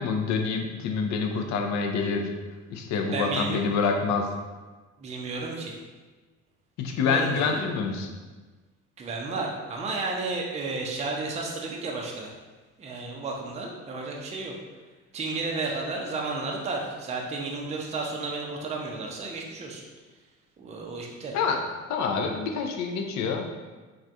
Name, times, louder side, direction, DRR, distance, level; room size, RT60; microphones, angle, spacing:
voice 1, 0.0-2.3 2.7-4.3 6.8-8.1 21.3-21.6 21.9-23.4, left 5 dB, 50° left, 4 dB, 0.5 m, -27 dB
voice 2, 3.1-3.6 5.0-5.7 6.9-7.6 9.0-12.3 12.8-14.6 15.1-19.9 20.6-21.4, right 3 dB, 20° right, -1 dB, 0.5 m, -32 dB
3.1 x 2.3 x 2.6 m, 1.3 s
hypercardioid pair, 60°, 38 cm